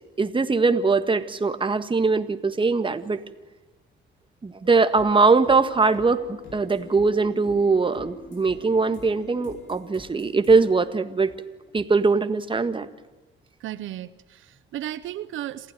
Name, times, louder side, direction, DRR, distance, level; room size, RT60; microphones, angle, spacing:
voice 1, 0.2-3.2 4.4-11.3 11.7-12.9, right 4 dB, 25° right, 10 dB, 1.7 m, -21 dB
sound 1, 4.6-12.0, left 4 dB, 75° left, 7.9 m, -45 dB
voice 2, 13.6-15.7, right 12 dB, 80° right, 13 dB, 0.9 m, -34 dB
27.5 x 15.5 x 9.2 m, 1.2 s
cardioid pair, 90°, 20 cm